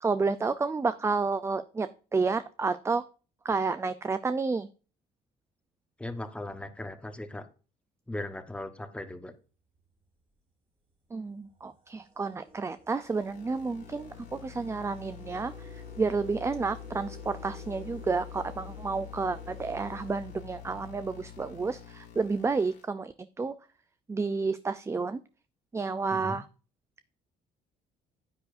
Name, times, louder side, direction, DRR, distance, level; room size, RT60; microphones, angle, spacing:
voice 1, 0.0-3.0 3.4-4.7 11.1-23.5 24.1-25.2 25.7-26.5, right 4 dB, 15° right, 13 dB, 0.4 m, -30 dB
voice 2, 6.0-7.4 8.1-9.3 26.1-26.4, left 1 dB, 5° left, 8 dB, 1.1 m, -38 dB
sound 1, 9.8-10.0 10.9-11.0 11.4-21.2, right 4 dB, 35° right, 3.6 m, -52 dB
sound 2, 12.9-22.8, left 12 dB, 85° left, 3.1 m, -46 dB
9.8 x 8.9 x 2.6 m, 0.36 s
cardioid pair, 110°, 17 cm